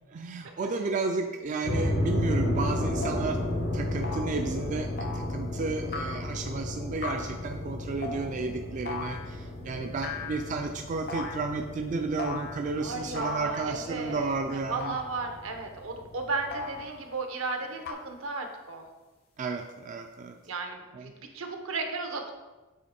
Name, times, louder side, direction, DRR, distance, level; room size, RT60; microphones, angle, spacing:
voice 1, 0.1-3.5 3.7-15.0 19.4-20.4 20.9-21.1, right 3 dB, 35° right, 5 dB, 0.3 m, -32 dB
sound 1, 1.6-16.9, left 1 dB, 90° left, 1.4 m, -34 dB
sound 2, 2.3-2.4 3.0-3.3 4.0-4.4 5.0-5.4 5.9-6.4 7.0-7.4 8.0-8.3 8.8-9.3 10.0-10.7 11.1-11.5 12.2-12.7 13.1-13.8 14.8-15.5 16.5-17.2 17.8-17.9, left 3 dB, 50° left, 0.6 m, -38 dB
voice 2, 12.8-14.3 14.7-18.9 20.4-22.3, right 4 dB, 75° right, 4 dB, 0.8 m, -34 dB
7.6 x 3.3 x 4.3 m, 1.2 s
head